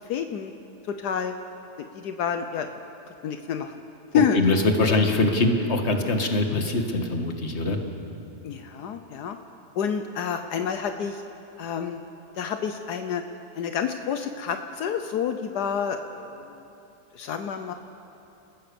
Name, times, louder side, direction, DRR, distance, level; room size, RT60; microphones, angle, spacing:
voice 1, 0.1-0.5 0.9-1.4 1.9-2.7 3.2-3.7 4.1-4.4 4.9-5.1 8.4-9.4 9.8-11.2 11.6-12.0 12.4-13.2 13.5-16.6 17.1-17.7, left 7 dB, 80° left, 7 dB, 1.4 m, -28 dB
voice 2, 4.4-7.8, left 2 dB, 45° left, 4 dB, 2.0 m, -23 dB
29.5 x 15.5 x 7.0 m, 2.9 s
omnidirectional pair, 1.7 m